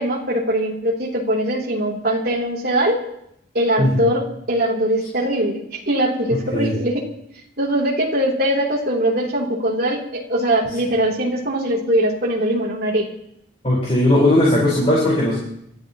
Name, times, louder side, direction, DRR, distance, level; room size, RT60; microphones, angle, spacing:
voice 1, 0.0-3.0 3.5-7.0 7.6-13.1, right 1 dB, 50° right, -3 dB, 3.2 m, -21 dB
voice 2, 13.6-15.4, left 1 dB, 30° left, -5 dB, 4.7 m, -17 dB
27.5 x 13.5 x 3.0 m, 0.75 s
head